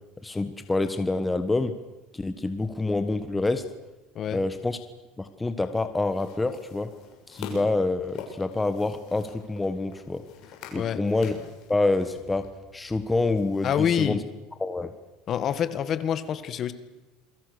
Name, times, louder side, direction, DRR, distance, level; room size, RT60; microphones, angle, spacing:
voice 1, 0.2-1.7 2.1-3.6 4.3-4.8 5.2-6.9 7.3-10.2 10.7-11.4 11.7-12.5 12.7-14.2 14.6-14.9, left 2 dB, 10° left, 9 dB, 1.4 m, -27 dB
sound 1, 6.1-13.7, left 5 dB, 60° left, 6.7 m, -46 dB
voice 2, 13.6-14.2 15.3-16.7, left 9 dB, 40° left, 13 dB, 1.8 m, -26 dB
28.0 x 22.5 x 6.8 m, 1.0 s
supercardioid pair, 125°, 0 cm